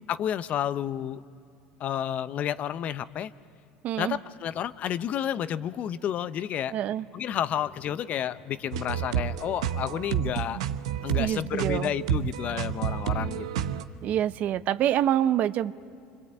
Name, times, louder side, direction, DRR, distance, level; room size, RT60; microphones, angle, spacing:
voice 1, 0.1-1.2 1.8-3.3 4.0-6.8 7.1-10.6 11.0-13.7, left 10 dB, 50° left, 15 dB, 0.7 m, -31 dB
voice 2, 3.8-4.2 6.7-7.0 11.2-11.9 14.0-15.7, right 11 dB, 55° right, 15 dB, 0.7 m, -26 dB
sound 1, 8.7-13.8, right 9 dB, 90° right, 0.8 m, -30 dB
26.0 x 24.5 x 8.7 m, 2.5 s
supercardioid pair, 90°, 3 cm